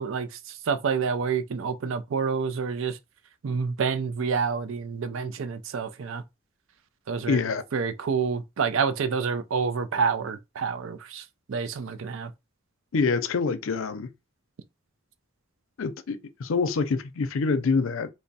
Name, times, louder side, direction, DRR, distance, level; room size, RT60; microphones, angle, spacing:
voice 1, 0.0-3.0 3.4-6.2 7.1-7.4 7.7-12.3, right 5 dB, 70° right, 0.4 m, -28 dB
voice 2, 7.3-7.6 12.9-14.1 15.8-18.1, left 4 dB, 75° left, 0.5 m, -26 dB
3.3 x 2.0 x 4.0 m
head